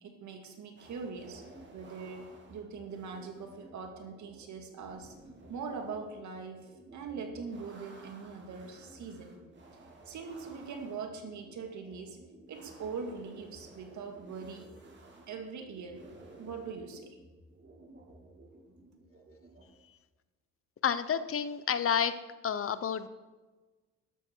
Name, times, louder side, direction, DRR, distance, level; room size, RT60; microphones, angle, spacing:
voice 1, 0.0-1.4 1.7-5.1 5.5-9.4 9.8-12.2 12.5-14.7 15.3-16.0 16.4-17.1, right 5 dB, 70° right, 5 dB, 2.2 m, -42 dB
sound 1, 0.8-19.6, right 2 dB, 40° right, 3.3 m, -54 dB
voice 2, 20.8-22.1 22.4-23.1, left 8 dB, 45° left, 13 dB, 0.9 m, -29 dB
13.0 x 12.0 x 4.6 m, 1.2 s
cardioid pair, 90°, 30 cm